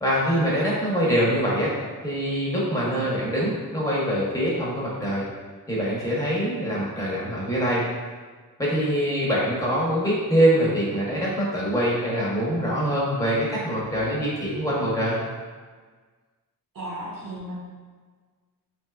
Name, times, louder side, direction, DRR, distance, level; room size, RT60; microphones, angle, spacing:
voice 1, 0.0-1.7 2.0-5.2 5.7-7.8 8.6-15.2, equal, 10° left, -6 dB, 0.8 m, -24 dB
voice 2, 16.7-17.5, right 1 dB, 70° right, -7 dB, 0.8 m, -34 dB
3.3 x 2.9 x 2.3 m, 1.5 s
wide cardioid pair, 110°, 36 cm